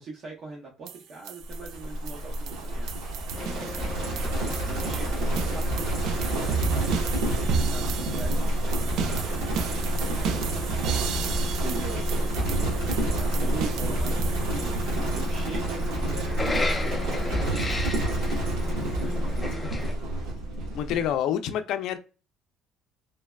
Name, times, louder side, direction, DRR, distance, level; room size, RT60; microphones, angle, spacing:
voice 1, 0.0-19.7, right 3 dB, 50° right, 0.8 m, -43 dB
sound 1, 0.9-15.4, right 7 dB, 70° right, 0.4 m, -35 dB
Livestock farm animals working animals, 1.5-21.2, right 1 dB, 90° right, 1.1 m, -28 dB
sound 2, 3.3-19.9, left 3 dB, 15° left, 0.5 m, -37 dB
voice 2, 20.7-22.0, left 10 dB, 70° left, 0.4 m, -27 dB
3.2 x 2.1 x 2.3 m
cardioid pair, 120°, 0 cm